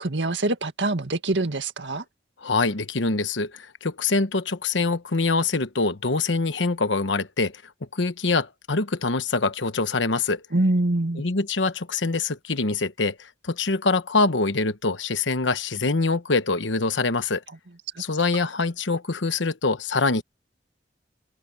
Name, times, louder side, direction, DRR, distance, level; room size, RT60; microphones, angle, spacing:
voice 1, 0.0-2.0 10.5-11.2, right 2 dB, 75° right, 1.9 m, -24 dB
voice 2, 2.4-7.6 7.9-10.4 11.2-17.4 18.0-20.2, left 3 dB, 85° left, 1.2 m, -24 dB
open air
head